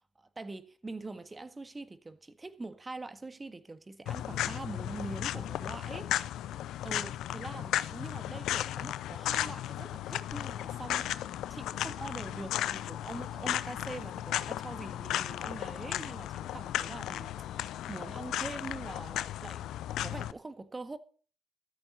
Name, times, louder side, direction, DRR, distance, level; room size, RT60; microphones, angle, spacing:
voice 1, 0.2-6.2 6.8-11.1 11.5-19.7 20.0-21.0, right 2 dB, 30° right, 1.7 m, -44 dB
sound 1, 4.1-20.3, left 12 dB, 70° left, 0.5 m, -35 dB
13.5 x 13.5 x 3.9 m
hypercardioid pair, 40°, 0 cm